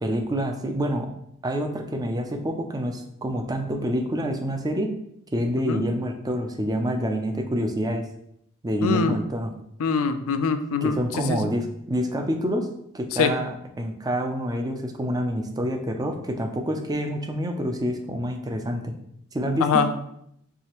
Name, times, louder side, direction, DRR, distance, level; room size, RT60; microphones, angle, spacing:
voice 1, 0.0-1.1 1.4-4.9 5.3-8.0 8.6-9.5 10.8-12.7 12.9-18.9 19.3-19.8, equal, 15° right, 4 dB, 0.4 m, -27 dB
voice 2, 8.8-9.2 9.8-11.5 13.1-13.3 19.6-19.9, left 5 dB, 65° left, 9 dB, 0.4 m, -24 dB
4.7 x 3.2 x 3.0 m, 0.74 s
head